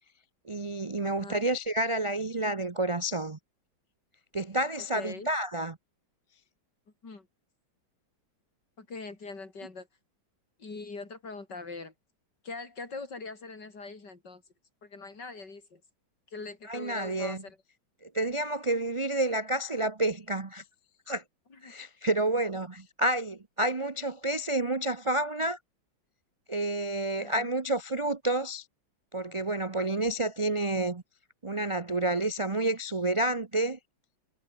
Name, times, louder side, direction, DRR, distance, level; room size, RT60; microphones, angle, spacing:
voice 1, 0.5-3.4 4.3-5.8 16.7-17.4 18.0-20.6 21.1-21.2 21.6-25.6 26.5-28.6 29.1-31.0 31.4-33.8, right 1 dB, 55° right, 0.3 m, -29 dB
voice 2, 1.0-1.4 4.8-5.3 7.0-7.3 8.8-9.9 10.6-11.9 12.4-14.4 14.8-15.8 16.3-17.6 21.5-21.8 27.2-27.5, left 3 dB, 60° left, 4.6 m, -42 dB
omnidirectional pair, 2.1 m